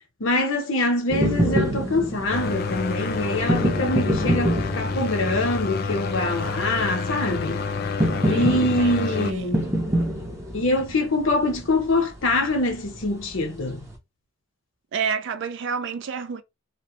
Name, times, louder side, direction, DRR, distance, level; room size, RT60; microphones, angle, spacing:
voice 1, 0.2-7.6 8.3-9.7 10.5-13.8, left 2 dB, 70° left, 0.8 m, -24 dB
sound 1, 1.1-14.0, right 1 dB, 15° right, 0.6 m, -27 dB
Prop Plane, 2.3-9.3, left 4 dB, 45° left, 0.3 m, -28 dB
voice 2, 8.3-9.5 14.9-16.4, right 6 dB, 60° right, 0.3 m, -29 dB
2.9 x 2.0 x 2.9 m
head